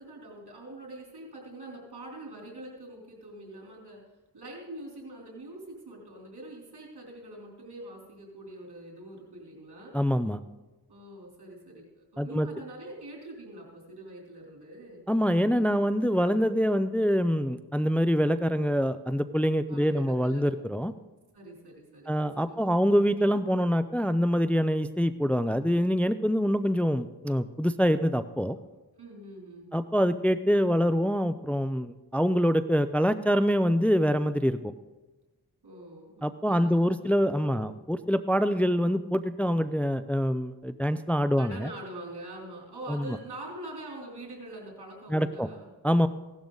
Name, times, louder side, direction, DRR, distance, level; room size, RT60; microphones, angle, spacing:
voice 1, 0.0-4.0 4.3-10.0 10.9-15.0 19.7-20.4 21.3-22.7 28.7-29.7 35.6-37.1 37.4-37.7 41.4-45.7, right 1 dB, 90° right, -1 dB, 3.6 m, -44 dB
voice 2, 9.9-10.4 12.2-12.5 15.1-20.9 22.1-28.6 29.7-34.6 36.2-41.7 42.9-43.0 45.1-45.5 45.8-46.1, equal, 5° left, 12 dB, 0.5 m, -25 dB
16.5 x 12.0 x 3.9 m, 1.2 s
cardioid pair, 45°, 38 cm